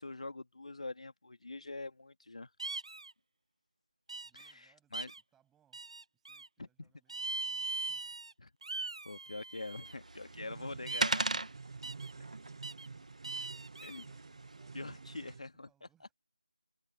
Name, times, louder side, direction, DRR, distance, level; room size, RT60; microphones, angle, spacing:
voice 1, 0.0-2.5 4.3-5.1 6.6-6.7 8.4-8.5 8.8-11.3 13.8-14.1 14.7-15.7, left 2 dB, 60° left, 1.7 m, -44 dB
sound 1, 2.6-3.1 4.1-4.5 4.9-5.2 5.7-6.5 7.1-8.3 8.6-9.9 10.9-11.3 11.8-12.1 12.6-12.9 13.2-14.0, right 3 dB, 50° right, 0.9 m, -41 dB
voice 2, 4.2-4.9 5.3-5.8 6.1-8.2 9.3-9.6 13.8-16.1, right 10 dB, 5° right, 7.8 m, -76 dB
sound 2, 9.8-15.3, right 2 dB, 70° right, 1.1 m, -39 dB
sound 3, 10.3-15.4, right 4 dB, 35° right, 0.6 m, -50 dB
figure-of-eight pair, 170°, 4 cm